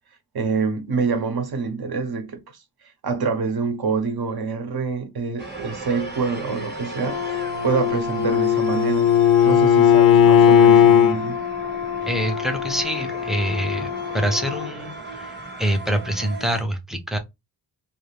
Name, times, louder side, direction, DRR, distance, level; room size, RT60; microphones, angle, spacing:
voice 1, 0.3-2.4 3.0-7.2 7.6-11.4, right 5 dB, 60° right, 0.7 m, -26 dB
sound 1, 5.4-16.6, right 2 dB, 25° right, 0.8 m, -37 dB
Brass instrument, 7.0-14.7, left 9 dB, 85° left, 0.7 m, -30 dB
Bowed string instrument, 7.4-11.2, left 9 dB, 55° left, 0.5 m, -16 dB
voice 2, 12.1-15.3 15.6-17.2, equal, ahead, 0.4 m, -25 dB
2.4 x 2.3 x 3.3 m
wide cardioid pair, 140°, 43 cm